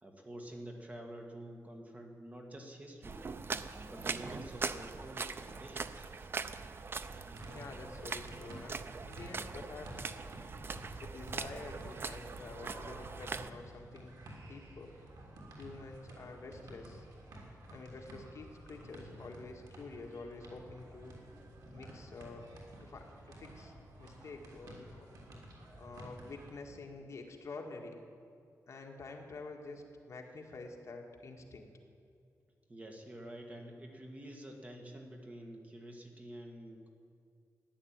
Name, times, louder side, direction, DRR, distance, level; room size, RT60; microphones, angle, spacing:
voice 1, 0.0-3.2 3.7-6.3 32.7-36.9, right 1 dB, 25° right, 2 dB, 1.8 m, -48 dB
sound 1, 3.0-13.5, right 4 dB, 40° right, 0.6 m, -41 dB
sound 2, 7.1-26.5, right 1 dB, 90° right, 3.4 m, -52 dB
voice 2, 7.5-10.2 11.0-14.1 14.5-14.9 15.6-17.1 17.7-21.1 21.7-22.5 22.8-23.7 24.0-25.1 25.8-28.0 28.7-31.7, left 3 dB, 50° left, 2 dB, 1.9 m, -48 dB
15.0 x 10.5 x 8.9 m, 2.4 s
wide cardioid pair, 155°, 6 cm